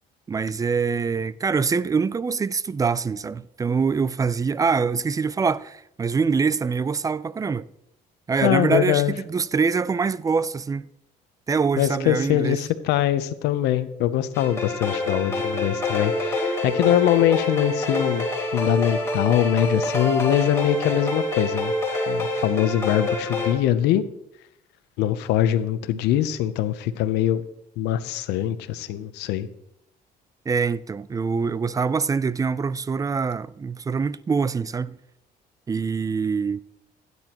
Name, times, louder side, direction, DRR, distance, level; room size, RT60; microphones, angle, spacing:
voice 1, 0.3-7.7 8.3-10.9 11.5-12.6 30.5-35.0 35.7-36.6, right 5 dB, 20° right, 0.4 m, -24 dB
voice 2, 8.4-9.1 11.8-18.3 18.5-21.7 22.1-24.0 25.0-27.4 27.8-29.5, left 12 dB, 90° left, 0.7 m, -23 dB
sound 1, 14.3-23.5, left 1 dB, 15° left, 3.6 m, -26 dB
16.0 x 9.7 x 3.0 m
cardioid pair, 110°, 17 cm